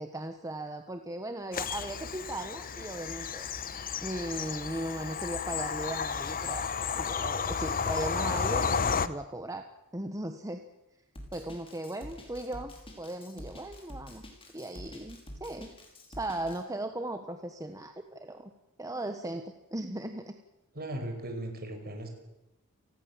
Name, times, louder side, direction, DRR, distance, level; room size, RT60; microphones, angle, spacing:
voice 1, 0.0-3.5 4.0-6.7 7.0-9.6 9.9-10.6 11.3-14.2 14.5-15.7 16.1-18.5 18.8-20.3, right 1 dB, 15° right, 7 dB, 1.3 m, -37 dB
Bird vocalization bird call bird song / Train, 1.5-9.1, left 6 dB, 40° left, 1.0 m, -32 dB
Drum kit, 11.2-16.6, left 1 dB, 25° left, 5.5 m, -46 dB
voice 2, 20.7-22.1, right 1 dB, 45° right, 5 dB, 5.5 m, -37 dB
29.5 x 19.5 x 7.4 m, 0.95 s
head